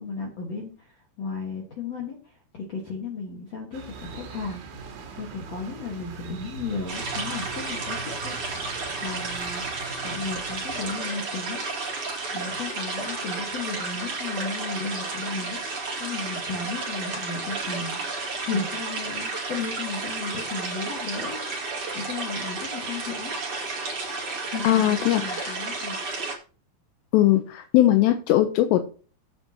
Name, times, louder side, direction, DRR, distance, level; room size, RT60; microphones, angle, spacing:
voice 1, 0.0-4.6 4.9-9.7 10.0-11.6 12.3-21.4 21.9-23.3 24.5-26.0, left 4 dB, 60° left, 0 dB, 1.7 m, -35 dB
sound 1, 3.7-10.9, right 4 dB, 75° right, 4.5 m, -41 dB
sound 2, 6.9-26.3, right 3 dB, 35° right, 2.5 m, -32 dB
voice 2, 24.6-25.6 27.1-28.8, left 13 dB, 80° left, 6 dB, 2.6 m, -20 dB
16.0 x 6.8 x 2.9 m, 0.37 s
omnidirectional pair, 5.5 m